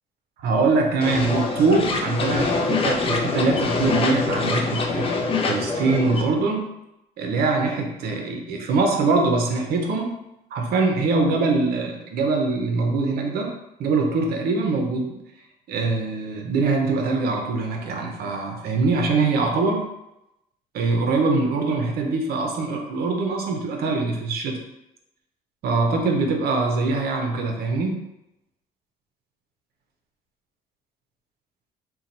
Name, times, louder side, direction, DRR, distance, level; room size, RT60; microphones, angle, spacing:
voice 1, 0.4-5.1 5.5-6.7 7.2-10.1 10.5-13.5 13.8-15.2 15.7-19.9 20.7-24.6 25.6-28.0, right 3 dB, 65° right, 2 dB, 0.7 m, -23 dB
sound 1, 1.0-6.2, left 3 dB, 35° left, 0.5 m, -24 dB
2.8 x 2.2 x 4.0 m, 0.88 s
cardioid pair, 110°, 17 cm